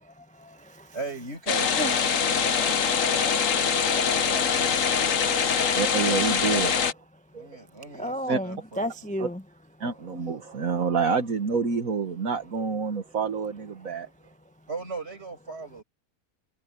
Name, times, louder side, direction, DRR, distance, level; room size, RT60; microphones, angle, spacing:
voice 1, 0.0-1.0 1.8-1.9 2.4-2.6 4.8-5.8 8.0-9.4, equal, 5° left, 0.8 m, -35 dB
voice 2, 0.9-4.8 7.3-9.1 14.7-15.8, right 3 dB, 45° right, 6.8 m, -38 dB
sound 1, 1.5-6.9, left 6 dB, 60° left, 1.5 m, -24 dB
voice 3, 5.7-6.8 7.3-7.5 8.3-8.4 9.2-9.3 9.8-14.1, right 5 dB, 65° right, 2.0 m, -27 dB
omnidirectional pair, 1.6 m